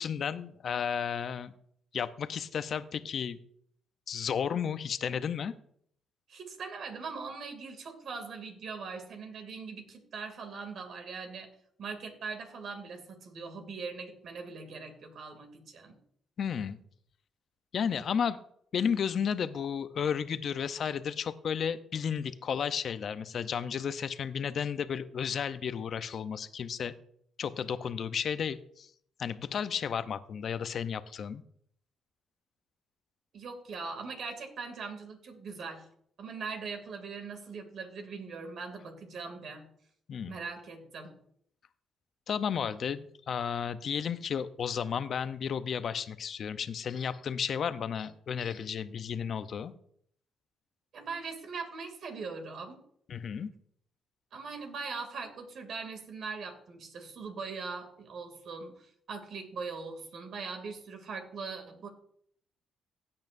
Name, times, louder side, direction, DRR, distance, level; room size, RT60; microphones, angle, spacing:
voice 1, 0.0-1.5 1.9-3.4 4.1-5.5 16.4-16.8 17.7-18.4 18.7-26.9 27.4-28.9 29.2-31.4 40.1-40.3 42.3-49.7 53.1-53.5, left 7 dB, 55° left, 12 dB, 0.7 m, -33 dB
voice 2, 6.3-11.5 11.8-16.0 33.3-35.9 36.2-39.7 40.3-41.2 50.9-52.8 54.3-61.9, right 4 dB, 65° right, 5 dB, 2.6 m, -41 dB
16.5 x 8.8 x 2.6 m, 0.65 s
cardioid pair, 90°, 0 cm